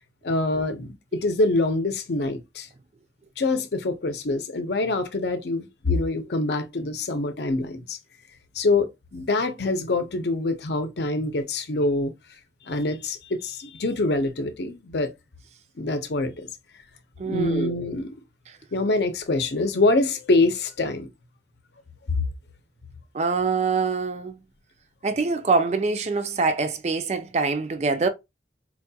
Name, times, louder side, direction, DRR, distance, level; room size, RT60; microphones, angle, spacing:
voice 1, 0.2-2.7 3.4-8.0 8.5-12.1 12.6-15.1 15.8-16.5 17.3-18.1 18.7-21.1, left 2 dB, 70° left, 0.6 m, -25 dB
voice 2, 17.2-17.8 23.1-24.4 25.0-28.1, right 4 dB, 40° right, 0.4 m, -24 dB
4.5 x 2.7 x 2.3 m
head